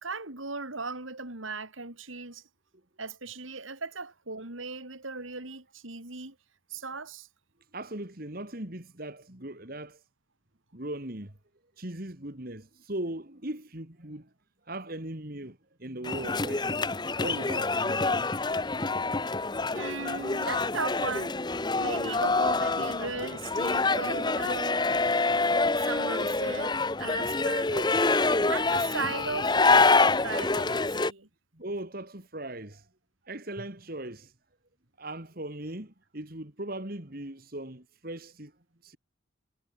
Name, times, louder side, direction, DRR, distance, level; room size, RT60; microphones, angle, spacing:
voice 1, 0.0-2.4 3.0-6.4 6.7-7.3 19.7-21.4 21.8-24.8 25.8-28.0 28.5-31.3, right 4 dB, 85° right, 4.6 m, -37 dB
voice 2, 7.7-10.0 10.7-11.4 11.8-14.3 14.7-16.9 17.2-18.0 31.5-32.9 33.2-34.3 35.0-38.5 38.8-39.0, right 1 dB, 45° right, 2.8 m, -39 dB
sound 1, 16.0-31.1, left 3 dB, 20° left, 0.9 m, -26 dB
head